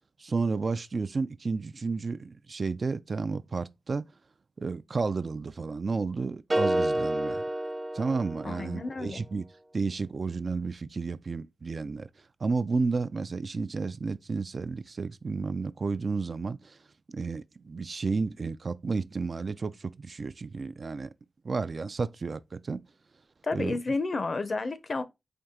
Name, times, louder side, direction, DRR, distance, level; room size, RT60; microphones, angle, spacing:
voice 1, 0.2-4.1 4.6-7.4 7.9-9.4 9.7-12.1 12.4-16.8 17.1-21.1 21.4-22.8 23.5-23.8, right 4 dB, 60° right, 0.3 m, -32 dB
sound 1, 6.5-8.8, right 1 dB, 30° right, 0.7 m, -29 dB
voice 2, 8.4-9.2 23.4-25.0, left 3 dB, 55° left, 0.6 m, -31 dB
4.5 x 2.7 x 3.6 m
cardioid pair, 55°, 0 cm